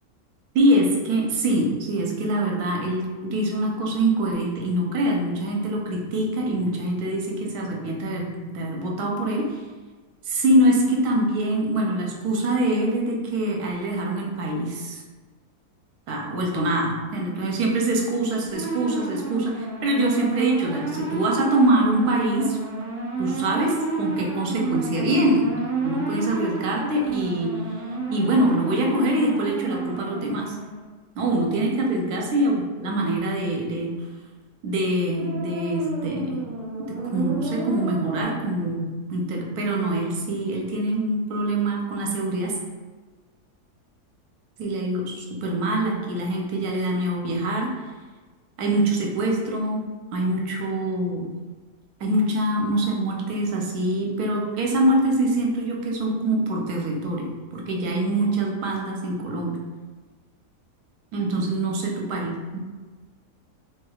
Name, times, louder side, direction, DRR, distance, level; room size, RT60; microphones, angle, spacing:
voice 1, 0.5-9.6 10.2-15.0 16.1-22.6 23.2-25.5 25.8-27.6 28.1-30.6 31.2-33.9 34.6-36.4 36.8-42.6 44.6-47.7 48.6-49.8 50.1-51.3 52.0-59.6 61.1-62.6, right 1 dB, 75° right, 0 dB, 1.1 m, -24 dB
sound 1, 18.5-30.9 35.0-38.2, right 3 dB, 55° right, 1.2 m, -30 dB
3.1 x 3.1 x 2.3 m, 1.3 s
omnidirectional pair, 1.7 m